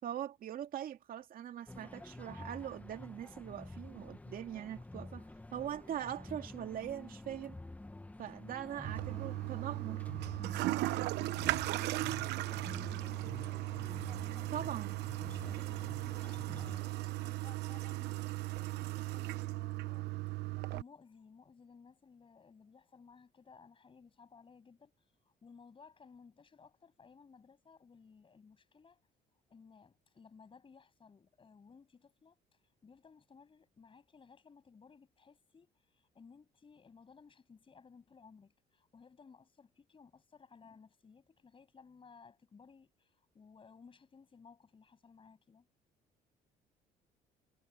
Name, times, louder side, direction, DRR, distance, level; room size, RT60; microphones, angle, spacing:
voice 1, 0.0-5.2 5.5-7.6 8.2-10.1 14.5-15.0, right 10 dB, 55° right, 2.4 m, -42 dB
sound 1, 1.7-16.8, left 2 dB, 10° left, 1.3 m, -49 dB
Toilet flush, 8.8-20.8, right 19 dB, 85° right, 0.9 m, -37 dB
voice 2, 10.5-12.0 12.5-13.3 15.8-18.3 18.5-24.9 25.2-29.0 29.5-32.4 32.8-45.7, left 5 dB, 30° left, 7.5 m, -59 dB
cardioid pair, 110°, 17 cm